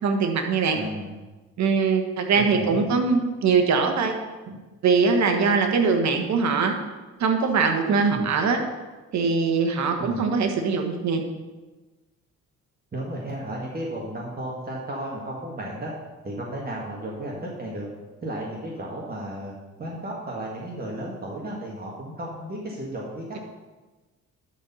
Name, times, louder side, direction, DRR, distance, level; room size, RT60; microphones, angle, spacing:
voice 1, 0.0-0.8 1.6-4.1 4.8-6.7 7.2-8.6 9.1-11.2, right 5 dB, 65° right, 5 dB, 1.4 m, -22 dB
voice 2, 0.7-1.2 2.3-2.9 4.5-4.6 8.1-8.3 10.0-10.2 12.9-15.9 16.2-17.9 18.2-19.5 19.8-23.4, right 1 dB, 30° right, -4 dB, 1.8 m, -34 dB
11.5 x 4.5 x 5.5 m, 1.2 s
cardioid pair, 90°, 30 cm